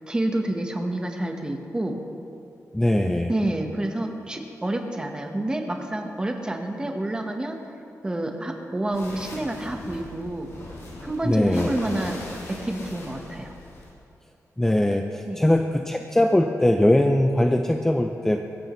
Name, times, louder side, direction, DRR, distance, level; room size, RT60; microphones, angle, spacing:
voice 1, 0.1-2.0 3.3-7.6 8.0-10.5 11.0-12.2 12.5-13.5 15.3-15.4, right 1 dB, 15° right, 3 dB, 1.2 m, -28 dB
voice 2, 2.7-3.3 11.2-11.8 14.6-18.4, left 1 dB, 5° left, 4 dB, 0.5 m, -21 dB
sound 1, 8.9-13.9, left 2 dB, 65° left, 3.9 m, -39 dB
22.5 x 14.5 x 3.2 m, 2.6 s
wide cardioid pair, 170°, 6 cm